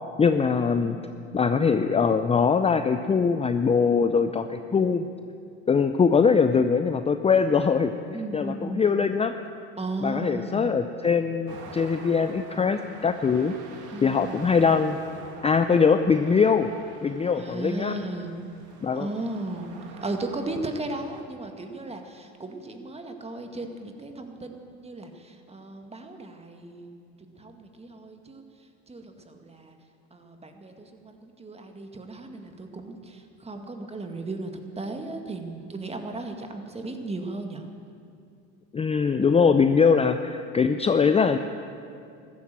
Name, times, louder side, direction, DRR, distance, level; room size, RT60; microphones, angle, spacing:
voice 1, 0.2-1.0 1.3-5.1 5.7-9.4 10.0-13.5 14.0-15.0 15.4-16.7 17.0-17.9 18.8-19.1 38.7-41.4, left 5 dB, 20° left, 9 dB, 0.6 m, -22 dB
voice 2, 0.7-1.1 8.1-8.9 9.8-10.7 13.9-14.6 17.3-18.3 18.9-28.4 28.9-29.8 30.1-34.5 34.8-37.7, right 2 dB, 20° right, 5 dB, 1.9 m, -36 dB
sound 1, 11.5-21.2, right 4 dB, 60° right, 2.4 m, -47 dB
14.0 x 12.5 x 7.6 m, 2.4 s
supercardioid pair, 85°, 34 cm